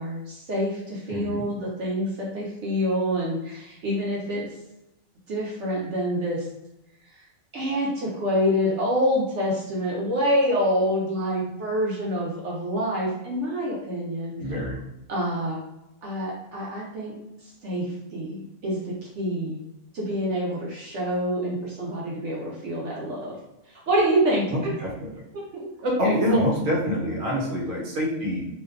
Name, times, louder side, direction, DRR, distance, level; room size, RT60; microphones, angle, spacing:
voice 1, 0.0-4.5 5.3-6.5 7.2-7.3 7.5-14.3 15.1-15.6 16.0-17.2 17.4-19.6 19.9-23.3 23.7-24.7 25.3-26.5, equal, 65° right, -4 dB, 0.8 m, -27 dB
voice 2, 1.1-1.4 14.4-14.8 24.5-25.3 26.0-28.5, equal, 90° right, -3 dB, 1.2 m, -26 dB
2.5 x 2.2 x 2.3 m, 0.89 s
omnidirectional pair, 1.5 m